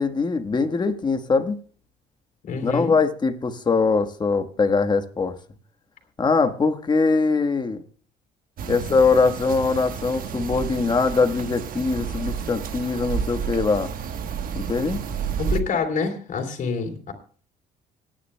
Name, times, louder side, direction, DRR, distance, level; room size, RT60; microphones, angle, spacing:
voice 1, 0.0-1.6 2.6-5.4 6.2-7.8 8.7-13.9 14.5-15.0, left 4 dB, 25° left, 1.3 m, -22 dB
voice 2, 2.4-2.9 15.4-17.1, left 5 dB, 50° left, 3.3 m, -27 dB
sound 1, 8.6-15.6, right 7 dB, 55° right, 1.2 m, -30 dB
26.0 x 10.0 x 2.2 m
cardioid pair, 110°, 17 cm